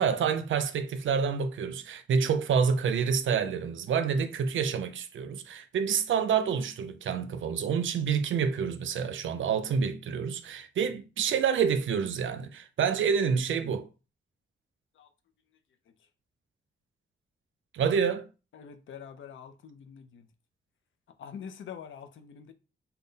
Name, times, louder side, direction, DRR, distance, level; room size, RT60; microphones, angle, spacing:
voice 1, 0.0-13.9 17.7-18.3, right 6 dB, 80° right, 0.5 m, -28 dB
voice 2, 18.5-20.3 21.2-22.5, left 7 dB, 85° left, 0.5 m, -45 dB
3.8 x 2.2 x 3.9 m
wide cardioid pair, 135°, 20 cm